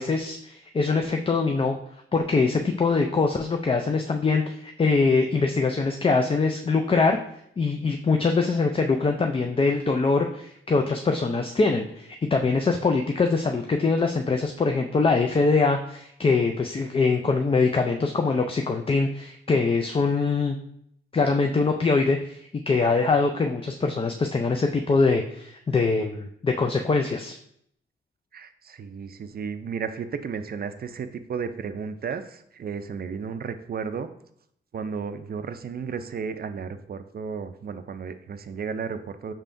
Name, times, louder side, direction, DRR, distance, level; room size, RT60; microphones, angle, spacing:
voice 1, 0.0-1.8 2.1-7.2 7.6-20.6 21.1-22.4 22.7-27.4, left 4 dB, 25° left, 3 dB, 0.3 m, -23 dB
voice 2, 28.3-34.1 34.7-39.3, right 6 dB, 50° right, 10 dB, 0.4 m, -33 dB
5.5 x 3.5 x 2.6 m, 0.70 s
cardioid pair, 70°, 21 cm